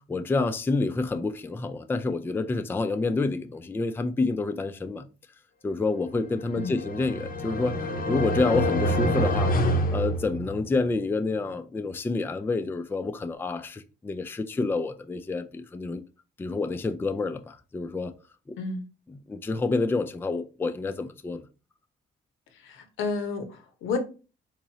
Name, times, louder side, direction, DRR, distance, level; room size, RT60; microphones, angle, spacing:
voice 1, 0.0-5.1 5.6-7.8 8.1-9.5 9.9-16.0 16.4-18.1 19.1-21.5, left 3 dB, 10° left, 0.3 m, -28 dB
sound 1, 6.4-10.8, equal, 45° left, 0.6 m, -27 dB
voice 2, 22.6-24.0, left 4 dB, 85° left, 0.8 m, -31 dB
3.7 x 3.0 x 2.8 m
cardioid pair, 90°, 20 cm